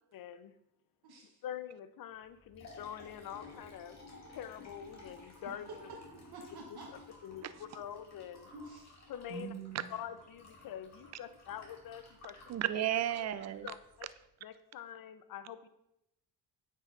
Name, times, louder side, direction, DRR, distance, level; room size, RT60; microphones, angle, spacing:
voice 1, 0.1-0.5 1.4-4.0 4.3-5.7 7.2-8.5 9.1-9.5 9.9-12.4 13.2-13.3 13.6-14.1 14.4-15.7, left 10 dB, 55° left, 12 dB, 0.6 m, -45 dB
voice 2, 1.0-1.4 5.9-6.0 6.3-6.9 8.5-9.0 9.3-9.8, right 4 dB, 65° right, -1 dB, 1.1 m, -46 dB
Liquid, 2.2-14.1, left 2 dB, 40° left, 2.1 m, -56 dB
voice 3, 12.5-13.7, right 11 dB, 40° right, 13 dB, 0.4 m, -33 dB
9.0 x 5.5 x 2.5 m, 0.83 s
cardioid pair, 90°, 41 cm